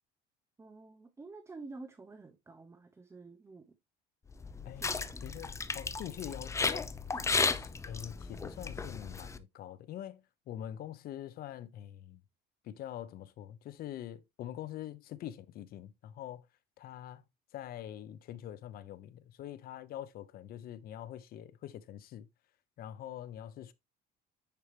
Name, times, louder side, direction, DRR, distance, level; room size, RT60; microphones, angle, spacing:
voice 1, 0.6-3.7 4.7-5.3 7.1-7.3, right 3 dB, 15° right, 0.9 m, -50 dB
sound 1, 4.3-9.4, left 4 dB, 15° left, 0.7 m, -34 dB
voice 2, 4.6-6.9 7.9-10.2 10.5-12.2 12.6-16.4 16.8-17.2 17.5-22.3 22.8-23.7, left 11 dB, 55° left, 0.9 m, -44 dB
10.0 x 4.6 x 3.3 m
cardioid pair, 135°, 18 cm